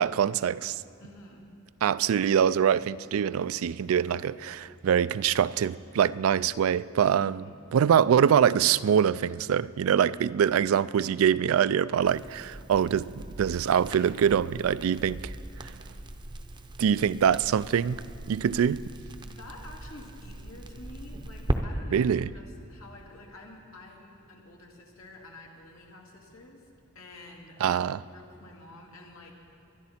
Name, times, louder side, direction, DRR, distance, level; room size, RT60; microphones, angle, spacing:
voice 1, 0.0-0.8 1.8-7.4 7.7-15.3 15.6-15.7 16.8-18.8 21.9-22.3 27.6-28.0, right 8 dB, 90° right, 0.3 m, -24 dB
voice 2, 1.0-1.5 7.2-7.6 19.2-22.1 22.3-26.7 26.9-27.8 28.1-29.3, left 2 dB, 85° left, 2.2 m, -49 dB
Crackle, 12.0-21.6, right 1 dB, 20° right, 0.6 m, -39 dB
23.0 x 10.5 x 4.3 m
head